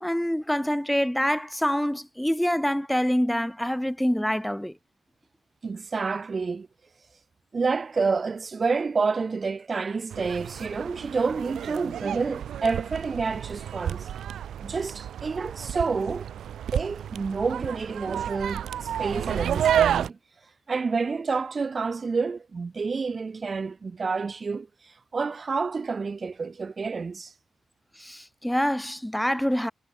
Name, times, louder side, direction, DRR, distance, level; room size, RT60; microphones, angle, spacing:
voice 1, 0.0-4.8 28.0-29.7, equal, 5° left, 0.6 m, -26 dB
voice 2, 5.6-6.7 7.5-14.1 14.6-16.3 16.7-20.2 20.7-24.7 25.1-27.3, right 4 dB, 35° right, 1.0 m, -29 dB
sound 1, 10.1-20.1, right 10 dB, 90° right, 0.4 m, -30 dB
wide cardioid pair, 135°, 0 cm